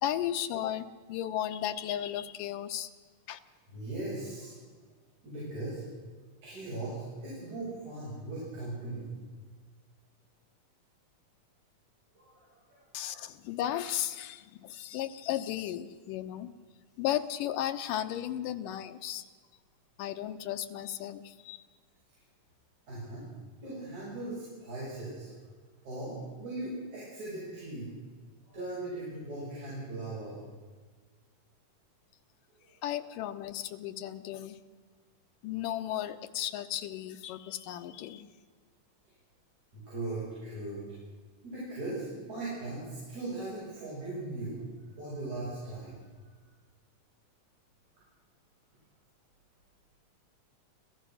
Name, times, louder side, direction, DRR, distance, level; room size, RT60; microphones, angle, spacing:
voice 1, 0.0-2.9 3.3-3.4 12.9-16.5 17.0-19.2 20.0-21.6 32.8-34.6 35.4-38.3, left 11 dB, 90° left, 9 dB, 2.6 m, -35 dB
voice 2, 3.7-4.5 5.2-5.8 6.4-9.1 12.1-12.8 22.9-23.3 23.6-25.4 25.8-27.9 28.5-30.4 32.6-32.7 39.7-40.8 41.4-44.6 45.0-46.0, right 2 dB, 60° right, -8 dB, 9.0 m, -39 dB
26.0 x 16.0 x 6.4 m, 1.5 s
omnidirectional pair, 3.8 m